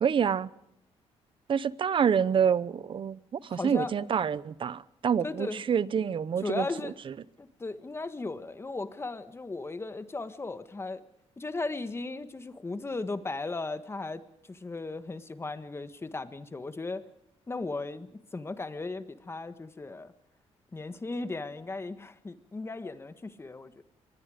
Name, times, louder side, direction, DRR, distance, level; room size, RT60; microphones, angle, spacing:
voice 1, 0.0-0.5 1.5-7.1, right 7 dB, 45° right, 0.8 m, -27 dB
voice 2, 3.5-3.9 5.2-5.6 6.4-6.9 7.4-11.0 11.4-14.2 14.5-17.0 17.5-20.1 20.7-23.8, left 3 dB, 20° left, 1.5 m, -36 dB
25.0 x 20.5 x 5.1 m
cardioid pair, 105°, 12 cm